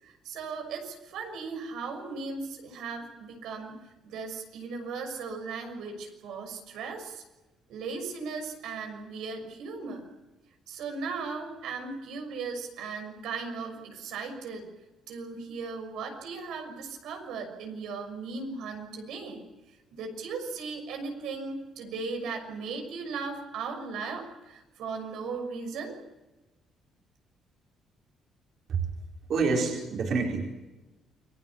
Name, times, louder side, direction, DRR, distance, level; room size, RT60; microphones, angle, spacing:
voice 1, 0.0-3.8 4.0-7.2 7.7-10.1 10.7-14.6 15.1-19.4 19.9-26.0, right 4 dB, 85° right, 4 dB, 6.2 m, -37 dB
voice 2, 29.3-30.5, right 4 dB, 50° right, -1 dB, 4.4 m, -27 dB
29.0 x 21.5 x 7.2 m, 1.1 s
cardioid pair, 165°, 0 cm